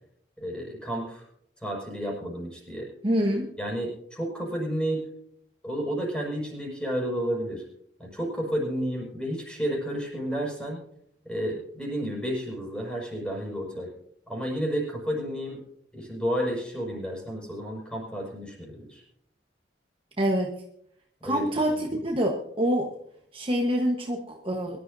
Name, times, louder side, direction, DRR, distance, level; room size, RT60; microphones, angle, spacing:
voice 1, 0.4-1.2 1.6-2.9 3.6-5.1 5.6-7.6 8.0-10.8 11.2-13.9 14.3-15.6 15.9-19.0 21.2-21.5, equal, 5° left, -2 dB, 5.6 m, -31 dB
voice 2, 3.0-3.5 20.2-20.5 21.2-22.9 23.3-24.8, equal, 30° right, 1 dB, 1.2 m, -26 dB
23.0 x 12.0 x 2.7 m, 0.71 s
head